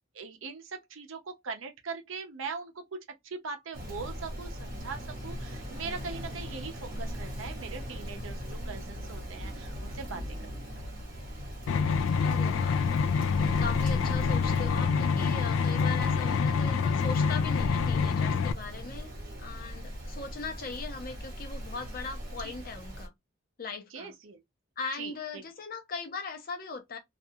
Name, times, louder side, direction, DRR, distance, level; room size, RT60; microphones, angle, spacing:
voice 1, 0.1-10.9 19.1-19.8 22.4-22.5 23.9-24.4 25.0-25.4, right 4 dB, 90° right, 0.6 m, -41 dB
Rain, 3.7-23.1, equal, 45° right, 1.1 m, -39 dB
sound 1, 11.7-18.5, left 5 dB, 80° left, 0.3 m, -26 dB
voice 2, 12.2-12.9 13.3-19.1 19.4-23.1 23.6-24.1 24.8-27.0, left 4 dB, 45° left, 0.7 m, -39 dB
2.5 x 2.3 x 2.7 m
head